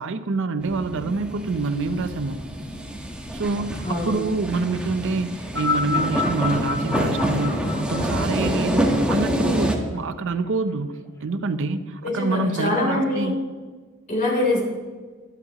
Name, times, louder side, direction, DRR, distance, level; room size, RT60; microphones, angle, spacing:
voice 1, 0.0-2.4 3.3-10.9 11.2-13.4, right 3 dB, 60° right, 11 dB, 0.6 m, -26 dB
sound 1, 0.6-9.8, equal, 5° right, 1.2 m, -26 dB
voice 2, 3.8-4.2 12.0-13.3 14.1-14.6, left 2 dB, 40° left, -2 dB, 3.3 m, -23 dB
sound 2, 5.4-10.0 10.9-11.0, left 4 dB, 15° left, 1.4 m, -29 dB
22.5 x 8.1 x 3.0 m, 1.4 s
head